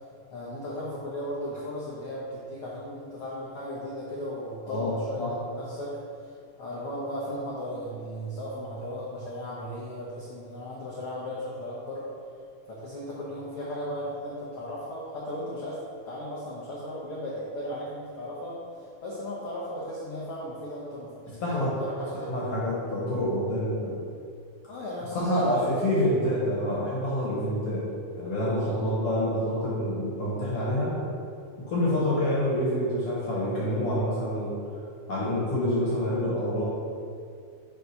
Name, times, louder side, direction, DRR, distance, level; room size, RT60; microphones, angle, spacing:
voice 1, 0.3-6.3 6.6-12.0 12.7-22.5 24.7-25.7 28.6-29.0 31.9-32.1, equal, 90° left, -6 dB, 1.2 m, -36 dB
voice 2, 4.7-5.3 21.4-21.7 22.3-24.0 25.2-27.8 28.2-30.9 31.7-34.5 35.1-36.7, left 1 dB, 60° left, -7 dB, 1.8 m, -27 dB
5.4 x 3.4 x 5.5 m, 2.3 s
omnidirectional pair, 3.6 m